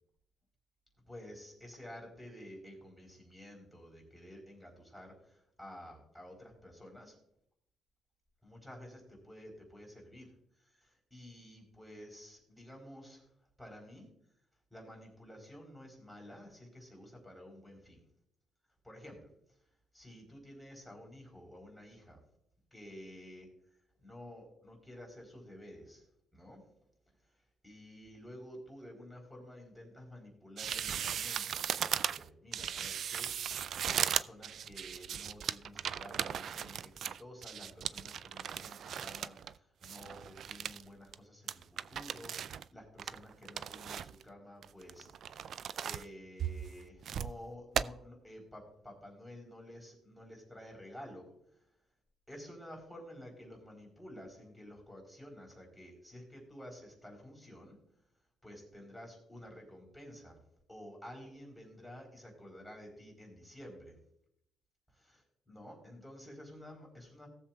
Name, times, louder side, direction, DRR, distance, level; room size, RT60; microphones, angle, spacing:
voice 1, 1.1-7.1 8.4-13.3 13.6-14.1 14.7-18.0 18.8-19.3 19.9-22.2 22.7-26.1 26.3-26.7 27.2-33.5 33.8-45.1 45.4-51.6 52.3-57.8 58.4-60.4 60.7-64.0 64.9-65.0 65.5-67.3, left 1 dB, ahead, -1 dB, 4.1 m, -51 dB
sound 1, 30.6-39.5 39.8-40.8 41.1-41.2 41.5-42.6 43.0-44.2 44.6-46.1 46.4-47.3 47.8-47.9, right 8 dB, 65° right, 0.3 m, -37 dB
18.5 x 7.3 x 2.3 m, 0.76 s
cardioid pair, 90°, 0 cm